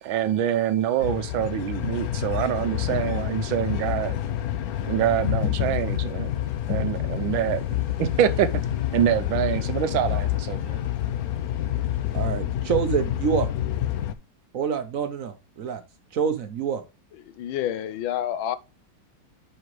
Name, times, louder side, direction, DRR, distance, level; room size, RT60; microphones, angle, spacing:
voice 1, 0.0-4.2 4.8-6.3 6.7-7.6 8.0-8.5 8.9-10.8 11.5-11.7, right 10 dB, 85° right, 1.5 m, -25 dB
sound 1, 1.0-14.1, left 12 dB, 70° left, 0.9 m, -28 dB
voice 2, 12.1-13.5 14.5-15.8 16.1-16.8, right 7 dB, 55° right, 1.0 m, -26 dB
voice 3, 17.1-18.6, left 11 dB, 90° left, 1.4 m, -29 dB
9.5 x 4.9 x 3.1 m
omnidirectional pair, 2.1 m